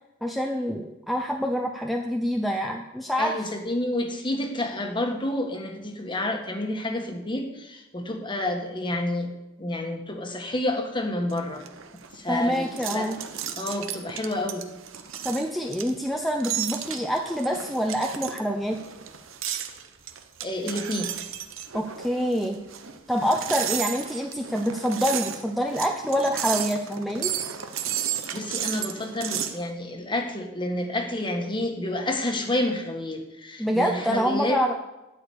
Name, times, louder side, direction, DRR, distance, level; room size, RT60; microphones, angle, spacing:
voice 1, 0.2-3.4 12.3-13.2 15.2-18.8 21.7-22.6 23.1-27.3 33.6-34.7, equal, ahead, 1 dB, 0.7 m, -26 dB
voice 2, 3.2-9.3 9.6-11.6 11.9-13.1 13.6-14.7 20.4-21.1 28.3-34.6, left 1 dB, 25° left, 3 dB, 1.4 m, -29 dB
sound 1, 11.3-29.6, right 10 dB, 70° right, 0.9 m, -33 dB
12.5 x 5.0 x 8.5 m, 1.0 s
head